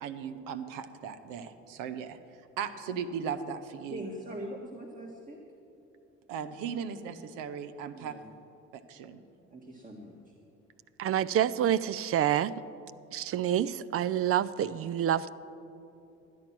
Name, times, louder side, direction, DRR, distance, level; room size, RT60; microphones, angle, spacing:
voice 1, 0.0-2.2 2.6-4.0 6.3-8.1 8.7-9.2, right 7 dB, 75° right, 11 dB, 0.8 m, -37 dB
voice 2, 3.9-5.4 7.9-8.3 9.5-10.3, right 1 dB, 25° right, 1 dB, 1.5 m, -42 dB
voice 3, 11.0-12.5 13.1-15.3, right 10 dB, 45° right, 17 dB, 0.4 m, -27 dB
13.0 x 9.1 x 6.0 m, 2.8 s
hypercardioid pair, 60°, 32 cm